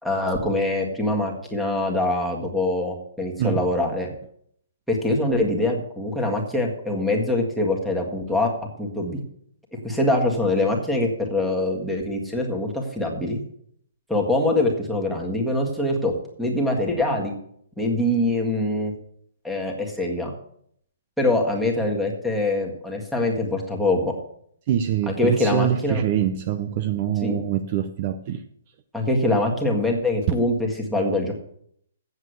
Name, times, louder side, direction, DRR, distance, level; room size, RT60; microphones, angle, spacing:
voice 1, 0.0-4.1 4.9-8.5 8.8-9.2 9.8-13.4 14.1-16.1 16.4-17.3 17.8-18.9 19.4-20.3 21.2-24.1 25.1-26.0 27.2-27.4 28.9-31.3, left 2 dB, ahead, 1.7 m, -24 dB
voice 2, 24.7-28.4 30.3-30.4, right 10 dB, 40° right, 0.7 m, -24 dB
8.1 x 7.2 x 8.0 m
hypercardioid pair, 155°, 0 cm